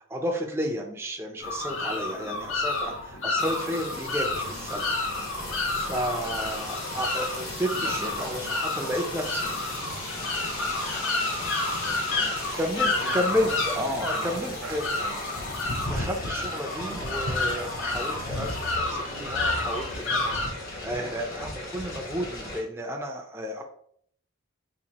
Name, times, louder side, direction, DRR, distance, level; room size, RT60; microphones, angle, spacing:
voice 1, 0.1-4.9 5.5-9.5 12.6-14.8 15.9-23.6, equal, 10° right, 1 dB, 0.4 m, -32 dB
sound 1, 1.4-20.5, left 2 dB, 65° left, 0.7 m, -30 dB
sound 2, 3.4-22.6, left 2 dB, 40° left, 1.0 m, -38 dB
sound 3, 6.0-13.2, left 2 dB, 85° left, 1.2 m, -42 dB
voice 2, 6.2-6.7 7.7-8.9 11.7-15.2, right 2 dB, 65° right, 3 dB, 0.7 m, -43 dB
4.1 x 2.6 x 2.8 m, 0.62 s
head